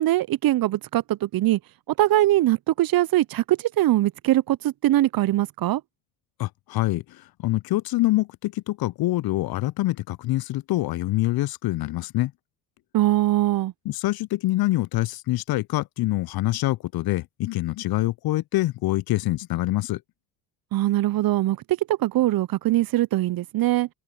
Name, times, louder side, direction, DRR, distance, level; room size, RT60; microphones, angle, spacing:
voice 1, 0.0-1.6 2.0-5.8 12.9-13.7 20.7-23.9, right 15 dB, 45° right, 0.9 m, -22 dB
voice 2, 6.4-12.3 13.9-20.0, left 17 dB, 45° left, 0.8 m, -25 dB
hypercardioid pair, 60°, 50 cm